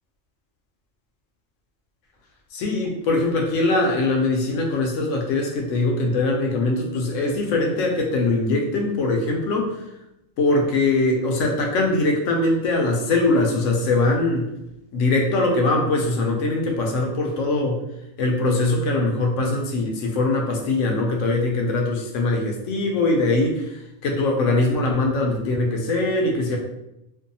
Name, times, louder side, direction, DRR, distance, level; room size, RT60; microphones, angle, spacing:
voice 1, 2.5-9.8 10.4-14.5 14.9-17.8 18.2-26.6, left 2 dB, 70° left, 1 dB, 0.9 m, -22 dB
2.6 x 2.2 x 2.6 m, 0.88 s
omnidirectional pair, 1.4 m